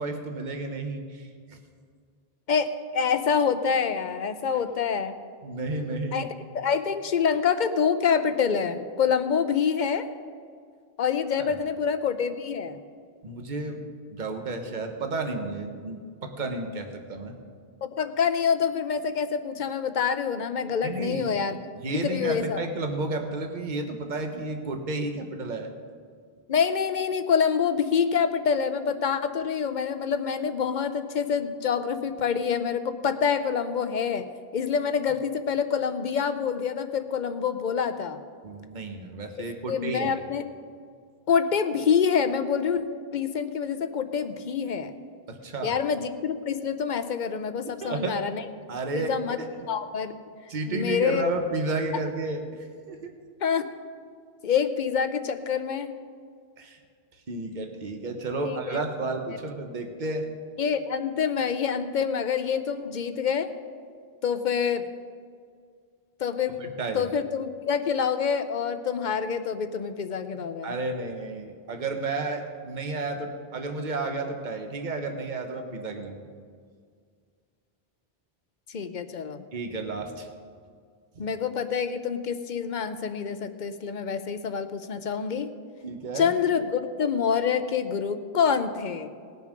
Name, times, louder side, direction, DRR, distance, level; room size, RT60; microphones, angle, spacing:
voice 1, 0.0-1.6 5.4-6.3 13.2-13.8 14.1-17.4 20.8-21.4 21.7-25.7 38.4-40.1 45.3-45.7 47.8-48.2 48.7-49.2 50.5-53.1 56.6-56.8 57.3-60.3 66.6-67.0 70.6-76.3 79.5-80.3 81.2-81.3 85.8-86.3, right 3 dB, 45° right, 4 dB, 1.2 m, -32 dB
voice 2, 2.5-5.1 6.1-10.1 11.0-12.8 17.8-21.6 21.9-22.7 26.5-34.2 34.5-38.2 39.7-40.4 41.3-42.8 43.1-44.9 45.6-48.4 48.9-49.4 49.7-50.1 50.7-51.3 53.4-53.7 54.4-55.9 58.5-58.8 60.6-63.5 64.2-64.8 66.2-66.5 66.9-70.8 78.7-79.4 81.2-85.5 86.1-89.1, left 6 dB, 50° left, 10 dB, 0.8 m, -26 dB
19.5 x 6.6 x 5.2 m, 2.1 s
omnidirectional pair, 1.1 m